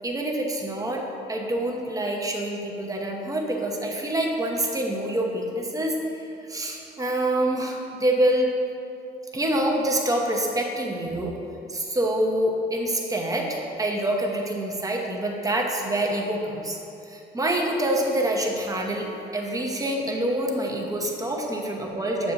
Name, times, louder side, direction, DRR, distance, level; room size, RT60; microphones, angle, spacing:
voice 1, 0.0-8.5 9.3-11.3 11.7-16.8 17.0-22.3, right 1 dB, 15° right, 0 dB, 0.9 m, -26 dB
7.1 x 6.8 x 2.6 m, 2.8 s
cardioid pair, 90°, 20 cm